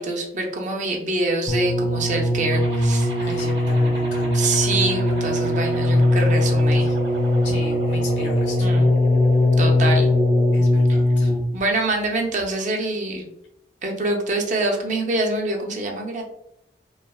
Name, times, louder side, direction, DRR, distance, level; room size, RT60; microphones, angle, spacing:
voice 1, 0.0-3.1 3.4-3.9 4.3-6.9 8.6-8.9 9.6-10.1 10.9-11.0 11.5-13.3 13.8-16.2, right 2 dB, 45° right, 2 dB, 0.5 m, -25 dB
sound 1, 1.5-11.6 12.4-12.5, left 1 dB, 20° left, 0.4 m, -20 dB
sound 2, 2.5-10.5, right 1 dB, 85° right, 0.9 m, -33 dB
voice 2, 3.1-4.5 6.8-7.0 7.4-8.7 10.5-11.3, left 1 dB, 90° left, 1 dB, 1.0 m, -37 dB
3.1 x 2.0 x 2.3 m, 0.79 s
head